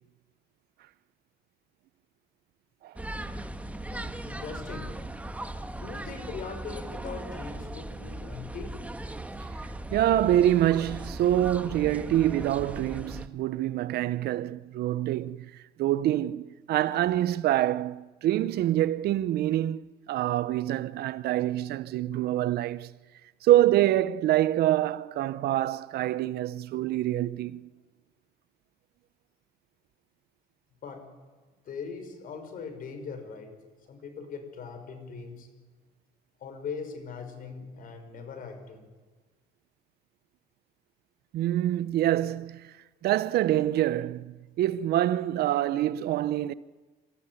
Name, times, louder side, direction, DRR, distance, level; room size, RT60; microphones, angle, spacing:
sound 1, 3.0-13.3, right 1 dB, 10° right, 1.4 m, -38 dB
voice 1, 3.9-4.9 5.8-8.7 30.8-31.0 31.7-33.5 33.9-35.5 36.4-38.9, left 5 dB, 55° left, 5.7 m, -40 dB
voice 2, 9.9-15.5 15.8-22.9 23.4-27.6 41.3-42.7 43.0-46.5, right 13 dB, 70° right, 0.8 m, -26 dB
27.5 x 14.5 x 9.7 m
cardioid pair, 110°, 17 cm